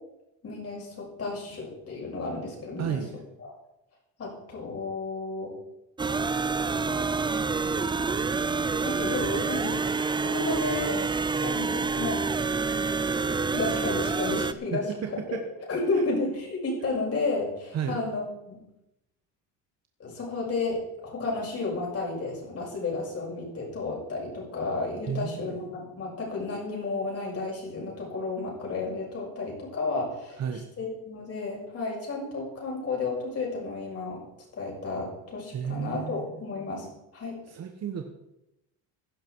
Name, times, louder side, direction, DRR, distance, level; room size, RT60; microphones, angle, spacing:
voice 1, 0.4-3.0 3.4-3.5 4.2-5.5 7.1-7.2 8.8-9.8 10.2-11.0 11.4-12.2 13.5-14.8 15.3-15.4 15.7-18.6 20.0-34.2 34.6-36.9 37.1-37.4, left 3 dB, 40° left, -2 dB, 6.7 m, -32 dB
voice 2, 2.8-3.1 14.7-15.4 17.7-18.0 25.1-25.7 30.4-30.6 35.5-36.4 37.5-38.0, right 7 dB, 45° right, 5 dB, 1.3 m, -32 dB
sound 1, 6.0-14.5, right 4 dB, 15° right, 0.5 m, -27 dB
16.0 x 11.0 x 4.7 m, 0.89 s
cardioid pair, 125°, 37 cm